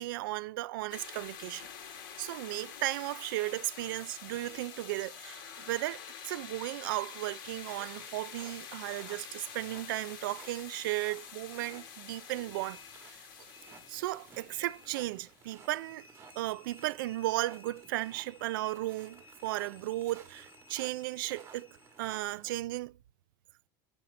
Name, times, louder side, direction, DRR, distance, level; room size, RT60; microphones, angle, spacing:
voice 1, 0.0-1.7 2.2-12.8 13.9-16.1 16.4-21.7 22.0-23.0, right 17 dB, 85° right, 0.5 m, -35 dB
sound 1, 0.9-15.7, left 7 dB, 90° left, 1.9 m, -47 dB
sound 2, 4.5-7.2 7.5-10.2 10.5-22.3, left 4 dB, 15° left, 1.4 m, -60 dB
sound 3, 7.4-22.6, right 7 dB, 25° right, 1.7 m, -57 dB
8.4 x 5.8 x 5.3 m
supercardioid pair, 155°, 11 cm